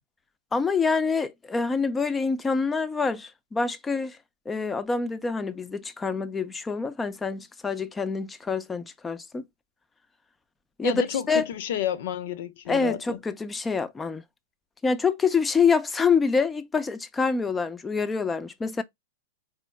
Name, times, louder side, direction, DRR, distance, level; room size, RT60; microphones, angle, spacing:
voice 1, 0.5-4.2 4.5-9.4 10.8-11.5 12.7-14.2 14.8-18.8, left 5 dB, 15° left, 0.6 m, -26 dB
voice 2, 10.8-13.2, left 9 dB, 60° left, 0.8 m, -30 dB
4.3 x 4.3 x 2.2 m
hypercardioid pair, 100°, 0 cm